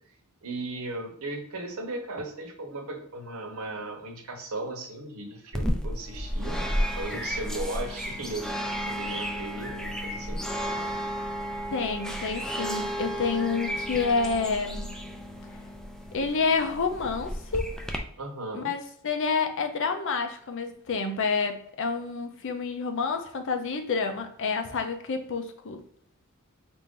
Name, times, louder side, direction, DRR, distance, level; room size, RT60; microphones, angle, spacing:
voice 1, 0.4-10.4 14.2-14.3 18.2-18.7, right 2 dB, 75° right, 3 dB, 0.9 m, -37 dB
sound 1, 5.5-18.0, equal, 5° left, 0.3 m, -33 dB
voice 2, 11.7-14.9 16.1-17.7 18.5-25.8, left 4 dB, 60° left, 7 dB, 0.5 m, -28 dB
4.2 x 2.6 x 3.7 m, 0.65 s
head